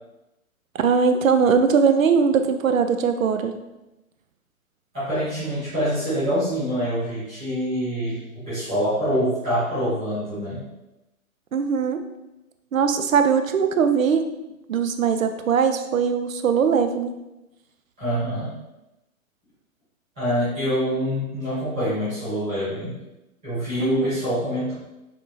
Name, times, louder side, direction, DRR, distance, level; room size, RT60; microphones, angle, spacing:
voice 1, 0.8-3.5 11.5-12.0 12.7-14.3 14.7-17.1 23.8-24.1, right 6 dB, 70° right, 8 dB, 0.5 m, -20 dB
voice 2, 4.9-10.6 18.0-18.6 20.2-23.0 23.4-24.7, equal, 5° right, -16 dB, 0.4 m, -25 dB
6.0 x 2.6 x 2.4 m, 0.96 s
figure-of-eight pair, 120°, 42 cm